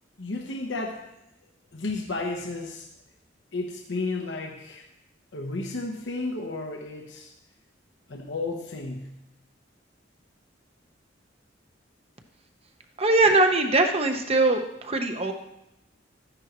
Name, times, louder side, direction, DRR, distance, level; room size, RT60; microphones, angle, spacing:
voice 1, 0.2-1.1 1.7-2.9 3.5-4.8 5.3-7.3 8.1-9.2, left 3 dB, 75° left, 1 dB, 1.1 m, -32 dB
voice 2, 13.0-15.3, right 2 dB, 35° right, 5 dB, 1.0 m, -21 dB
13.5 x 10.0 x 3.1 m, 0.83 s
head